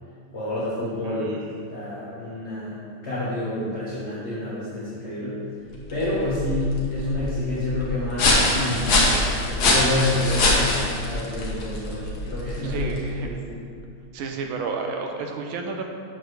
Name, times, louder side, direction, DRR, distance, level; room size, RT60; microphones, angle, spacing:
voice 1, 0.3-5.4 5.9-9.2 9.4-13.6, left 1 dB, 35° left, -9 dB, 1.3 m, -28 dB
voice 2, 1.0-1.4 12.6-13.4 14.1-15.9, right 4 dB, 75° right, 3 dB, 1.5 m, -31 dB
sound 1, 5.7-13.2, left 2 dB, 80° left, 2.1 m, -24 dB
7.7 x 7.1 x 3.2 m, 2.3 s
omnidirectional pair, 2.3 m